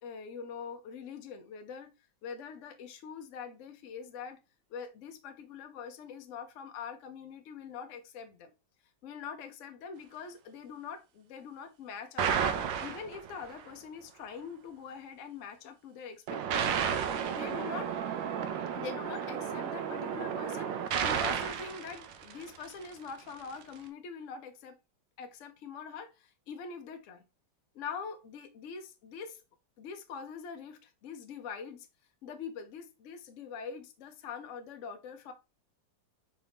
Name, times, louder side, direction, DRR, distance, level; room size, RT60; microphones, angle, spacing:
voice 1, 0.0-1.9 2.2-4.4 4.7-8.5 9.0-12.4 12.8-17.9 18.7-24.8 25.2-27.2 27.7-29.4 29.8-31.9 32.2-35.3, left 6 dB, 60° left, 0.8 m, -43 dB
sound 1, 12.2-13.6 16.3-22.8, right 8 dB, 85° right, 1.3 m, -32 dB
4.9 x 2.6 x 3.3 m
omnidirectional pair, 2.0 m